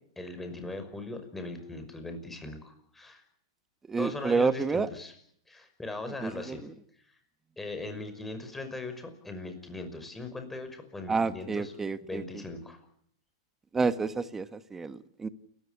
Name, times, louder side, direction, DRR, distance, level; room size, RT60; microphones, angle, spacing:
voice 1, 0.2-3.2 4.0-5.1 5.5-6.6 7.6-11.7 12.0-12.8, left 2 dB, 10° left, 7 dB, 5.6 m, -39 dB
voice 2, 3.9-4.9 6.2-6.5 11.1-12.2 13.7-15.3, right 4 dB, 15° right, 13 dB, 1.4 m, -29 dB
29.5 x 14.5 x 9.9 m, 0.68 s
hypercardioid pair, 120°, 2 cm